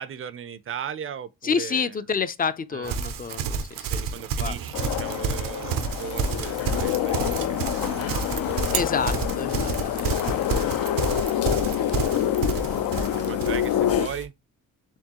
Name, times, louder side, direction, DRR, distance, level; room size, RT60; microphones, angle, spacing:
voice 1, 0.0-2.0 2.7-3.0 3.9-8.2 10.2-10.8 11.2-14.3, right 8 dB, 40° right, 0.4 m, -38 dB
voice 2, 1.4-4.0 4.4-4.5 7.4-7.6 8.7-10.1 10.6-10.7 12.7-13.0, left 6 dB, 30° left, 0.3 m, -29 dB
Livestock farm animals working animals, 2.8-14.0, right 6 dB, 85° right, 0.7 m, -30 dB
sound 1, 4.7-14.1, left 11 dB, 80° left, 0.5 m, -27 dB
sound 2, 6.0-14.3, equal, 45° left, 0.9 m, -40 dB
4.4 x 3.5 x 2.8 m
cardioid pair, 120°, 33 cm